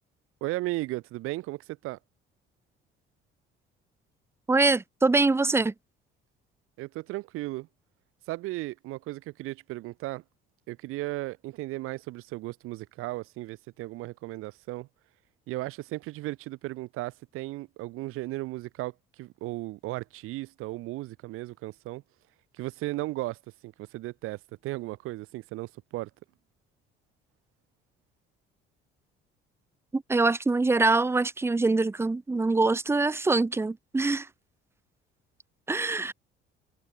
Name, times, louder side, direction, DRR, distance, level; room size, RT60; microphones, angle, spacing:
voice 1, 0.4-2.0 6.8-7.7 8.3-10.2 10.7-14.9 15.5-22.0 22.5-26.1, right 19 dB, 85° right, 5.6 m, -35 dB
voice 2, 4.5-5.7 29.9-34.3 35.7-36.1, right 3 dB, 10° right, 1.5 m, -24 dB
cardioid pair, 155°, 21 cm